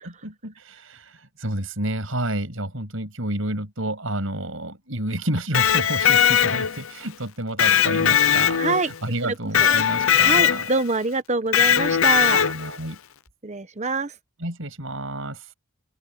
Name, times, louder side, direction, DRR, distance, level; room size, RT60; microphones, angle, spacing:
voice 1, 0.0-10.7 12.4-13.0 14.4-15.5, right 1 dB, 65° right, 7.5 m, -30 dB
Electric guitar, 5.4-6.9 7.6-9.0 9.5-10.8 11.5-12.8, left 9 dB, 70° left, 0.7 m, -19 dB
voice 2, 8.6-8.9 9.2-9.7 10.1-12.4 13.4-14.1, right 3 dB, 30° right, 1.0 m, -25 dB
open air
head